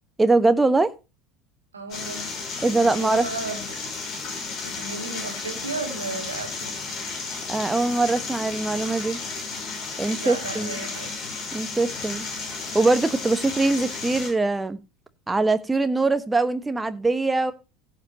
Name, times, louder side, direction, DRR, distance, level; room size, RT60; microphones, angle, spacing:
voice 1, 0.2-0.9 2.6-3.3 7.5-9.2 10.0-10.7 11.5-14.8 15.3-17.5, right 3 dB, 15° right, 1.3 m, -22 dB
voice 2, 1.7-2.3 2.8-3.8 4.6-6.7 10.2-11.1, right 3 dB, 85° right, 2.3 m, -34 dB
sound 1, 1.9-14.3, left 4 dB, 45° left, 6.2 m, -33 dB
16.5 x 7.8 x 2.9 m
figure-of-eight pair, 70°, 0 cm